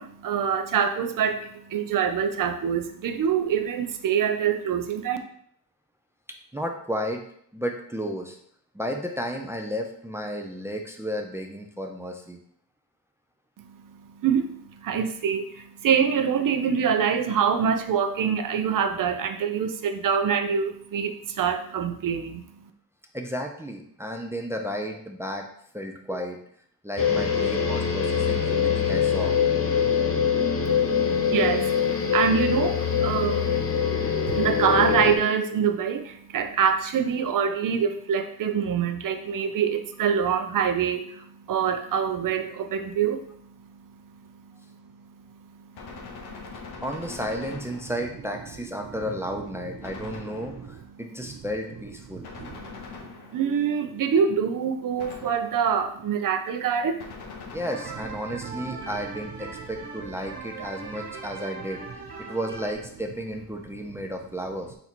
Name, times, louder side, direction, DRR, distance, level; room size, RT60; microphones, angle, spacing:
voice 1, 0.0-5.2 13.6-22.7 30.6-46.8 50.3-50.7 51.2-51.3 52.1-57.6 58.7-58.8 62.2-62.3, right 7 dB, 60° right, 7 dB, 0.6 m, -26 dB
voice 2, 6.5-7.2 7.5-8.4 8.7-12.4 23.1-25.5 25.7-26.4 26.8-29.4 46.8-52.3 57.5-64.8, equal, 5° right, 3 dB, 0.4 m, -33 dB
sound 1, 27.0-35.2, left 7 dB, 40° left, 0.7 m, -23 dB
Gunshot gunfire, 45.7-48.3 49.8-50.9 52.2-53.7 55.0-55.8 57.0-58.1, left 4 dB, 90° left, 0.9 m, -42 dB
sound 2, 57.6-62.7, right 4 dB, 85° right, 1.3 m, -40 dB
3.9 x 2.9 x 4.2 m, 0.66 s
wide cardioid pair, 120°, 37 cm